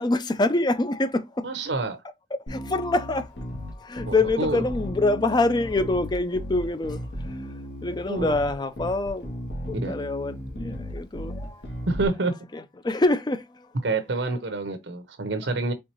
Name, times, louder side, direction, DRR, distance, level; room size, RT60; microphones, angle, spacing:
voice 1, 0.0-1.5 2.3-3.3 3.5-7.0 7.3-7.5 7.8-9.3 9.7-11.6 12.5-13.4, left 2 dB, 25° left, 0.4 m, -25 dB
voice 2, 1.4-2.0 4.1-4.6 8.1-8.4 9.7-10.0 11.9-12.3 13.8-15.7, right 3 dB, 80° right, 0.8 m, -27 dB
Bass guitar, 2.5-12.1, equal, 70° left, 1.9 m, -35 dB
4.4 x 3.6 x 2.9 m
head